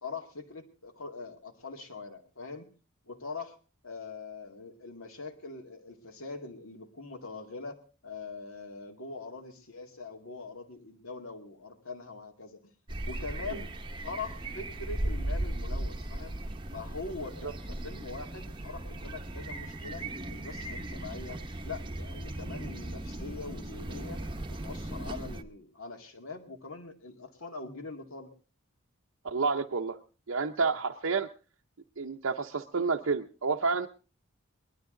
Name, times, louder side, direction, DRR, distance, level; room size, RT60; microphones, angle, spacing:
voice 1, 0.0-2.7 3.1-3.6 3.8-12.6 13.0-13.7 14.0-16.3 16.7-20.0 20.3-24.2 24.5-28.3, left 3 dB, 70° left, 4 dB, 2.2 m, -42 dB
sound 1, 12.9-25.4, right 1 dB, 20° right, 0.9 m, -37 dB
voice 2, 29.2-30.0 30.3-31.3 32.0-33.9, right 4 dB, 70° right, 2 dB, 0.7 m, -29 dB
20.0 x 12.0 x 3.8 m, 0.36 s
head